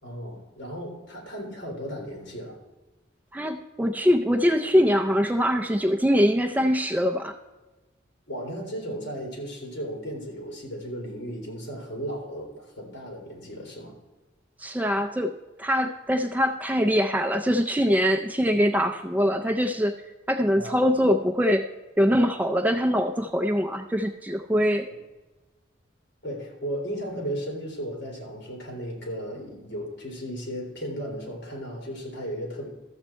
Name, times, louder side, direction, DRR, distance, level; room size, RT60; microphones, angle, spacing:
voice 1, 0.0-2.6 8.3-13.9 20.5-20.9 26.2-32.7, equal, 60° left, 0 dB, 3.3 m, -35 dB
voice 2, 3.3-7.4 14.6-15.3 15.6-19.9 20.3-21.7 22.0-24.9, equal, 10° right, 5 dB, 0.4 m, -23 dB
13.5 x 7.3 x 4.4 m, 1.1 s
head